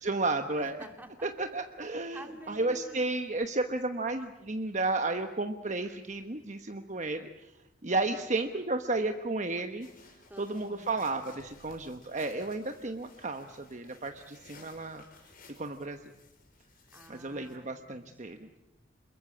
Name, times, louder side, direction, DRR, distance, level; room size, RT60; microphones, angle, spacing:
voice 1, 0.0-0.7 1.2-7.5 7.8-9.9 10.4-15.0 15.6-16.1 17.1-18.4, right 2 dB, 35° right, 6 dB, 1.1 m, -33 dB
voice 2, 0.5-1.3 1.8-3.1 10.3-10.9 16.9-18.6, right 1 dB, 10° right, 4 dB, 2.8 m, -50 dB
sound 1, 9.8-17.6, left 3 dB, 45° left, 5.0 m, -57 dB
27.5 x 22.0 x 8.6 m, 0.96 s
head